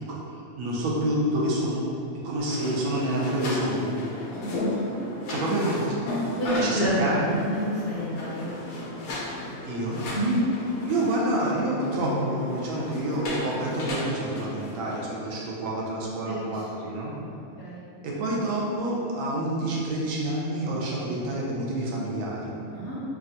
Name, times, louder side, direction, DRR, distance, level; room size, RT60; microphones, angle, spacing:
voice 1, 0.6-1.8 2.2-3.9 5.3-6.0 6.6-7.3 9.6-10.0 10.8-17.1 18.0-22.5, right 1 dB, 75° right, -4 dB, 0.9 m, -28 dB
sound 1, 2.4-15.0, left 1 dB, 80° left, 1.0 m, -34 dB
voice 2, 4.4-4.8 6.4-8.5 10.1-10.3 16.3-16.6 17.6-17.8 22.7-22.9, equal, 55° left, -9 dB, 0.8 m, -28 dB
3.5 x 2.2 x 2.6 m, 2.6 s
omnidirectional pair, 1.5 m